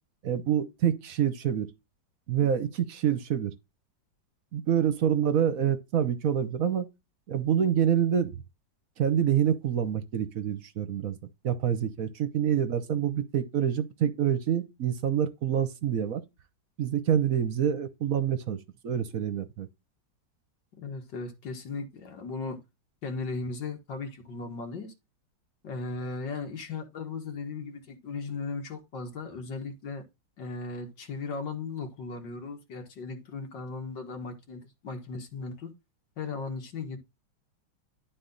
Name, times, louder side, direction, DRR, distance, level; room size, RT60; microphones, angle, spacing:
voice 1, 0.2-1.7 2.3-3.5 4.5-6.9 7.3-8.4 9.0-11.2 11.4-16.2 16.8-18.6 18.8-19.7, right 9 dB, 60° right, 1.1 m, -26 dB
voice 2, 20.8-22.6 23.0-24.9 25.6-30.0 30.4-35.7 36.2-37.0, left 4 dB, 80° left, 2.2 m, -37 dB
11.0 x 4.3 x 3.9 m
omnidirectional pair, 1.9 m